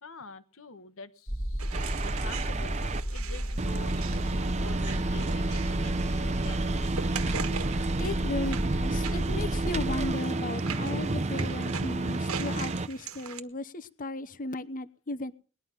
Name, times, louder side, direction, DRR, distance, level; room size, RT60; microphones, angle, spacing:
voice 1, 0.0-2.8 3.1-7.0, left 3 dB, 65° left, 13 dB, 1.3 m, -47 dB
sound 1, 1.3-10.1, equal, 20° left, 1.7 m, -32 dB
sound 2, 1.6-13.4, right 6 dB, 75° right, 1.5 m, -42 dB
sound 3, 1.7-3.0 3.6-12.9, right 2 dB, 30° right, 0.7 m, -31 dB
voice 2, 7.9-15.3, left 2 dB, 40° left, 15 dB, 0.9 m, -35 dB
20.0 x 11.5 x 5.9 m, 0.39 s
head